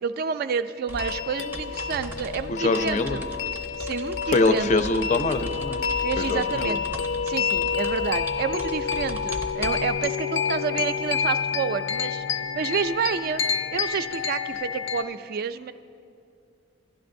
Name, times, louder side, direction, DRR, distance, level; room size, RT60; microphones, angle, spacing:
voice 1, 0.0-3.3 3.8-4.9 6.0-6.8 7.2-12.2 12.5-13.4 13.7-15.7, right 6 dB, 55° right, 11 dB, 0.3 m, -29 dB
sound 1, 0.9-15.0, left 6 dB, 90° left, 0.5 m, -29 dB
sound 2, 0.9-10.1, right 1 dB, 10° right, 0.6 m, -38 dB
voice 2, 2.6-3.2 4.3-5.8 6.2-6.8, left 3 dB, 40° left, 9 dB, 0.4 m, -23 dB
15.5 x 11.5 x 2.6 m, 2.4 s
head